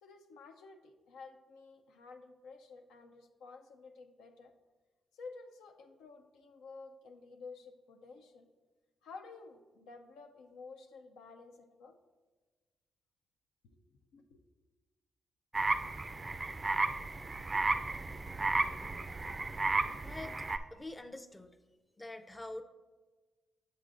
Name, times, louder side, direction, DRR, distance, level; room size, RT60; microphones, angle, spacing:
voice 1, 0.0-4.5 5.1-8.5 9.0-12.0 14.1-14.4 20.4-20.6, left 4 dB, 90° left, 4 dB, 0.5 m, -52 dB
sound 1, 15.5-20.6, right 3 dB, 35° right, 0.3 m, -33 dB
voice 2, 20.0-21.5 22.0-22.6, left 2 dB, 20° left, 8 dB, 0.5 m, -45 dB
7.4 x 6.7 x 2.5 m, 1.3 s
supercardioid pair, 55°, 0 cm